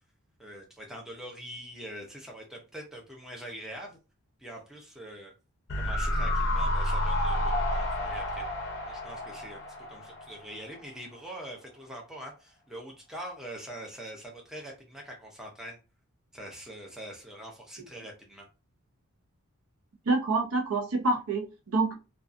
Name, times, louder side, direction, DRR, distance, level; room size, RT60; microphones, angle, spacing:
voice 1, 0.4-4.0 4.4-5.3 5.8-8.4 8.9-9.6 9.9-15.8 16.3-18.5, right 1 dB, ahead, -1 dB, 0.5 m, -43 dB
sound 1, 5.7-10.9 11.2-11.3, left 1 dB, 50° left, 0.5 m, -30 dB
voice 2, 20.1-21.9, right 3 dB, 75° right, 4 dB, 0.6 m, -27 dB
2.5 x 2.3 x 2.4 m, 0.30 s
head